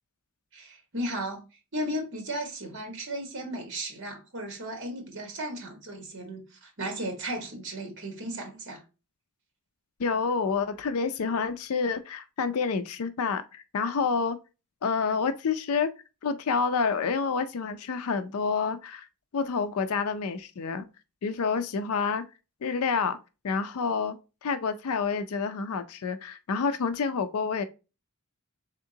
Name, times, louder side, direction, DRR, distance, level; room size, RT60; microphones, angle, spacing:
voice 1, 0.5-1.4 1.7-8.8, right 1 dB, 55° right, 1.3 m, -35 dB
voice 2, 10.0-14.4 14.8-15.9 16.2-19.1 19.3-20.9 21.2-22.2 22.6-23.2 23.4-27.6, left 5 dB, 70° left, 0.4 m, -28 dB
3.7 x 3.6 x 2.7 m
head